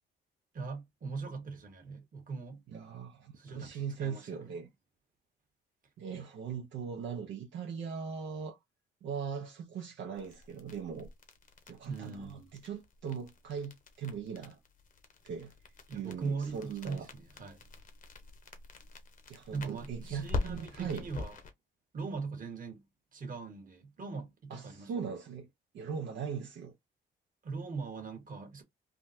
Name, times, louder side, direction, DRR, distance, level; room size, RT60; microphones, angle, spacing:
voice 1, 0.5-2.6 3.4-4.4 11.9-12.5 15.9-17.6 19.5-21.3 21.9-22.8 23.1-25.1 27.4-28.6, right 4 dB, 45° right, 1.5 m, -40 dB
voice 2, 2.7-4.7 6.0-8.6 9.0-11.1 11.7-14.6 15.2-15.5 15.9-17.1 19.3-21.1 24.5-25.5 25.7-26.7, right 6 dB, 70° right, 0.8 m, -40 dB
sound 1, 10.1-21.5, left 3 dB, 40° left, 0.9 m, -44 dB
3.7 x 2.3 x 2.7 m
cardioid pair, 90°, 20 cm